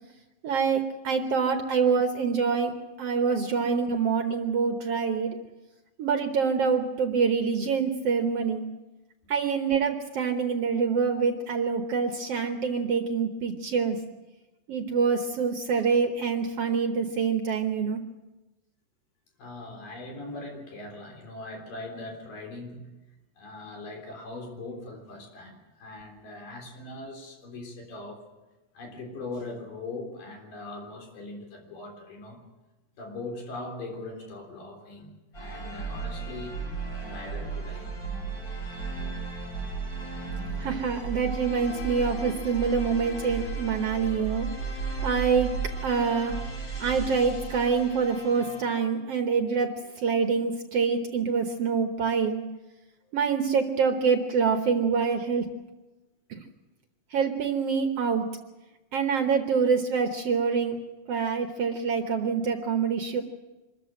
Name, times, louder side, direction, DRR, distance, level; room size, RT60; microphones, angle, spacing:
voice 1, 0.4-5.4 6.0-8.6 9.3-14.0 14.7-18.0 40.6-44.5 45.0-45.5 45.8-46.4 46.8-52.4 53.1-55.5 56.3-56.4 57.1-58.3 58.9-60.8 61.1-63.2, right 5 dB, 60° right, 6 dB, 1.7 m, -26 dB
voice 2, 19.4-22.9 23.4-28.2 28.7-32.4 33.0-36.6 37.0-37.9 45.8-45.9, left 2 dB, 80° left, 2 dB, 5.4 m, -40 dB
sound 1, 35.3-48.9, right 4 dB, 25° left, 6.8 m, -35 dB
25.0 x 14.0 x 7.7 m, 1.1 s
omnidirectional pair, 3.8 m